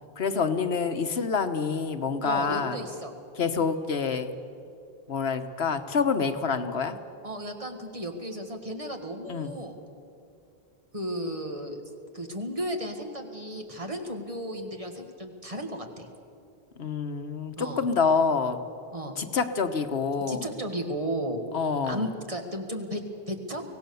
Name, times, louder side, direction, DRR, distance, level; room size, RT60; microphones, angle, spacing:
voice 1, 0.2-2.8 3.4-4.3 5.1-7.0 9.3-9.5 16.8-18.6 19.2-20.4 21.5-22.0, left 5 dB, 85° left, 8 dB, 1.3 m, -27 dB
voice 2, 2.2-3.1 7.2-9.8 10.9-11.8 12.1-16.1 17.6-17.8 18.9-19.2 20.3-21.4 21.8-23.6, right 1 dB, 35° right, 4 dB, 1.8 m, -34 dB
24.0 x 17.0 x 7.0 m, 2.5 s
omnidirectional pair, 1.0 m